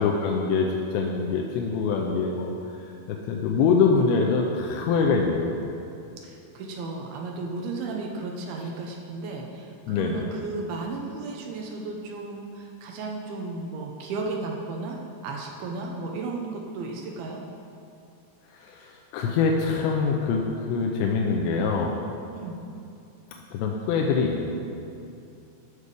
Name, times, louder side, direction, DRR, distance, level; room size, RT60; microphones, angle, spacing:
voice 1, 0.0-2.5 3.1-5.5 9.9-10.3 18.6-20.4 20.7-21.9 23.5-24.6, left 5 dB, 85° left, 0 dB, 2.8 m, -24 dB
voice 2, 6.2-15.0 15.2-17.4 22.3-22.6, right 3 dB, 80° right, 1 dB, 2.3 m, -34 dB
12.0 x 6.8 x 4.8 m, 2.6 s
omnidirectional pair, 5.2 m